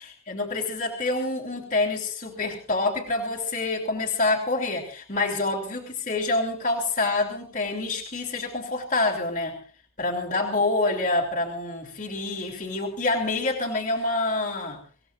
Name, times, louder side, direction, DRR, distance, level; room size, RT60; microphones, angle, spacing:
voice 1, 0.0-9.6 10.0-14.8, left 2 dB, 40° left, -2 dB, 3.2 m, -27 dB
26.5 x 16.0 x 2.6 m, 0.40 s
head